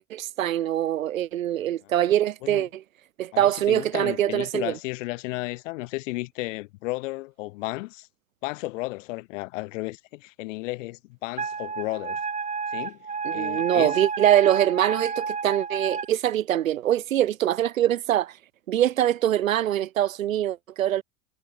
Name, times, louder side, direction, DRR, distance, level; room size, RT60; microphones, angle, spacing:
voice 1, 0.0-2.8 3.2-4.7 13.2-18.3 18.7-21.0, right 12 dB, 75° right, 1.7 m, -23 dB
voice 2, 3.3-8.1 8.4-12.2 12.7-13.0 13.3-14.0, left 21 dB, 65° left, 7.2 m, -33 dB
Wind instrument woodwind instrument, 11.4-16.1, right 5 dB, 20° right, 2.1 m, -30 dB
hypercardioid pair, 80°, 40 cm